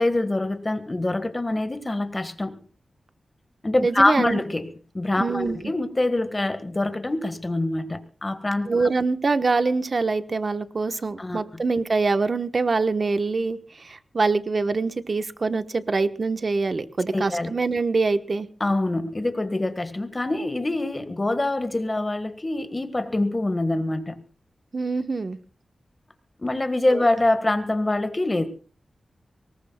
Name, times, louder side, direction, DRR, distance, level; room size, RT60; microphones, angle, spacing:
voice 1, 0.0-2.6 3.6-8.9 11.2-11.6 17.1-17.5 18.6-24.2 26.4-28.5, left 2 dB, 20° left, 1.7 m, -25 dB
voice 2, 3.8-4.4 5.2-5.6 8.7-18.5 24.7-25.4 26.9-27.0, right 3 dB, 40° right, 1.2 m, -24 dB
23.5 x 21.0 x 2.3 m
wide cardioid pair, 175°, 0 cm